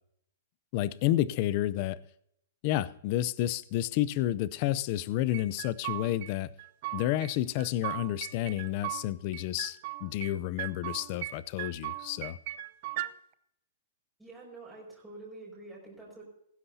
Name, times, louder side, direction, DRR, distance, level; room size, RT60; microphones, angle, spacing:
voice 1, 0.7-2.0 2.6-6.5 6.9-12.4, left 14 dB, 35° left, 18 dB, 0.5 m, -30 dB
sound 1, 5.3-6.3 6.6-7.3 7.6-9.0 9.3-10.3 10.6-11.3 11.6-13.1, right 17 dB, 40° right, 0.7 m, -37 dB
voice 2, 14.2-16.2, right 2 dB, ahead, -7 dB, 5.5 m, -47 dB
18.5 x 15.5 x 2.8 m, 0.73 s
hypercardioid pair, 165°, 0 cm